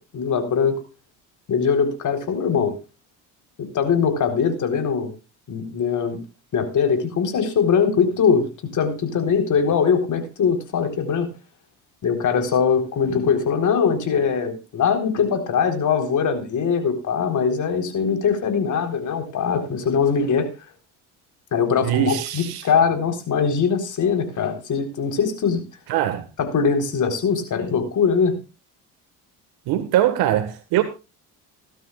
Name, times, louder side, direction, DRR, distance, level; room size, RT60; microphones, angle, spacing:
voice 1, 0.1-0.8 1.5-2.7 3.6-5.1 5.5-6.2 6.5-8.5 8.7-11.3 12.0-20.5 21.5-25.6 26.4-28.4, left 6 dB, 50° left, 4.0 m, -21 dB
voice 2, 21.8-22.7 25.9-26.2 29.7-30.8, right 12 dB, 75° right, 1.6 m, -21 dB
17.5 x 12.5 x 2.4 m
supercardioid pair, 85°, 38 cm